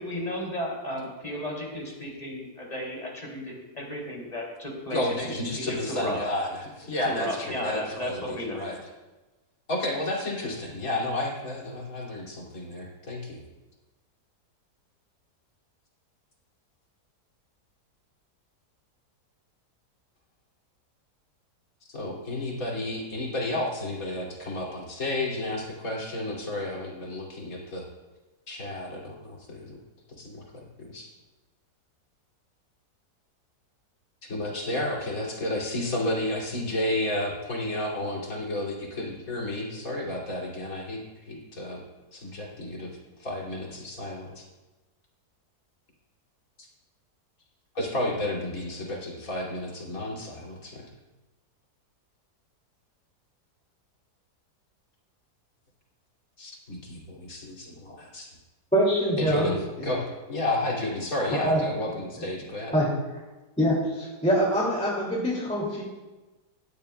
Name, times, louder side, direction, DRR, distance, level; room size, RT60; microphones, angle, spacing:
voice 1, 0.0-6.2 7.0-8.6, equal, 20° left, -2 dB, 2.9 m, -34 dB
voice 2, 4.9-8.8 9.7-13.4 21.9-27.8 28.5-29.8 30.1-30.4 30.8-31.1 34.2-41.8 42.1-44.4 46.6-46.7 47.7-50.8 56.4-58.3 59.2-59.6 59.8-62.7, left 1 dB, 55° left, -4 dB, 3.1 m, -32 dB
voice 3, 58.7-59.9 61.4-61.6 62.7-62.9 63.6-65.8, equal, 5° left, -5 dB, 2.3 m, -24 dB
17.5 x 12.0 x 2.3 m, 1.2 s
omnidirectional pair, 1.8 m